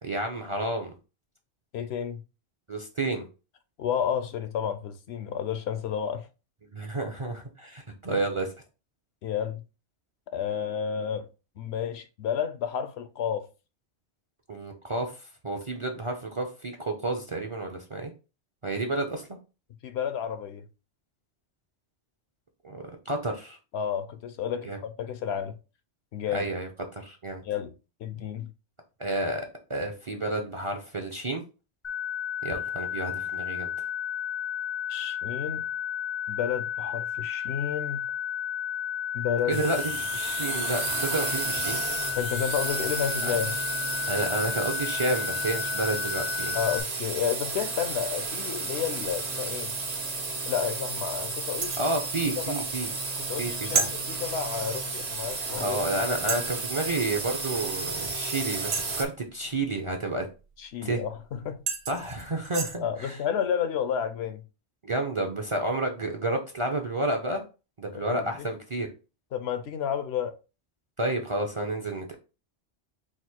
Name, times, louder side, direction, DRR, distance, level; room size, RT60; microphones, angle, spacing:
voice 1, 0.0-0.9 2.7-3.3 6.7-8.5 14.5-15.1 15.4-18.1 18.6-19.2 22.6-23.6 24.7-24.8 26.3-27.4 29.0-29.4 29.7-31.4 32.4-33.7 39.5-41.8 43.2-43.3 44.1-46.6 51.8-52.9 53.4-53.9 55.6-60.3 60.8-61.0 61.9-63.2 64.8-67.4 67.8-68.9 71.0-72.1, right 2 dB, 35° right, 0.5 m, -30 dB
voice 2, 1.7-2.2 3.8-6.3 8.1-8.2 9.2-9.6 10.3-11.3 11.6-13.5 19.8-20.6 23.7-25.5 26.1-26.5 27.4-27.7 28.0-28.5 34.9-35.7 36.3-38.1 39.1-39.6 42.1-43.5 46.5-49.7 50.5-51.8 52.4-52.6 53.2-55.8 60.6-61.6 62.8-64.4 67.9-68.5 69.3-70.4, left 8 dB, 70° left, 0.8 m, -31 dB
sound 1, 31.8-46.8, left 8 dB, 50° left, 0.3 m, -33 dB
sound 2, 39.5-59.1, right 3 dB, 70° right, 1.3 m, -33 dB
sound 3, 51.6-51.9 53.7-53.9 55.3-55.4 56.3-56.6 58.7-59.1 61.1-61.2 61.7-62.8, right 5 dB, 55° right, 1.0 m, -30 dB
4.8 x 2.0 x 4.3 m
omnidirectional pair, 1.2 m